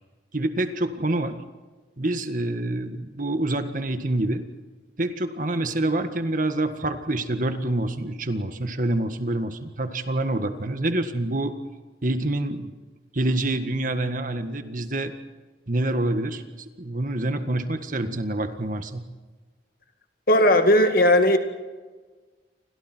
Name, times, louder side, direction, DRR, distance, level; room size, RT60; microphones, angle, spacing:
voice 1, 0.3-1.4 2.0-4.4 5.0-11.5 12.0-12.7 13.1-15.1 15.7-16.4 16.8-19.0, right 1 dB, 45° right, 8 dB, 1.8 m, -26 dB
voice 2, 20.3-21.4, left 1 dB, 55° left, 6 dB, 2.1 m, -17 dB
30.0 x 25.5 x 4.6 m, 1.4 s
head